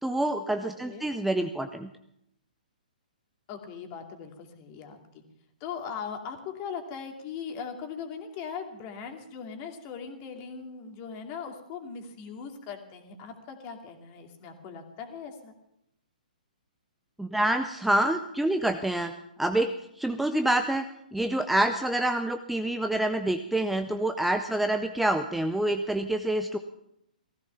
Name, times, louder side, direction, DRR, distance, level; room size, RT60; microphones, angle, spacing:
voice 1, 0.0-1.9 17.2-19.1 19.4-19.7 20.0-20.9 21.1-26.6, right 1 dB, 5° right, 7 dB, 0.6 m, -27 dB
voice 2, 3.5-5.2 5.6-15.5 20.1-20.4, left 6 dB, 35° left, 4 dB, 2.5 m, -40 dB
16.5 x 15.0 x 5.7 m, 0.79 s
figure-of-eight pair, 125°, 5 cm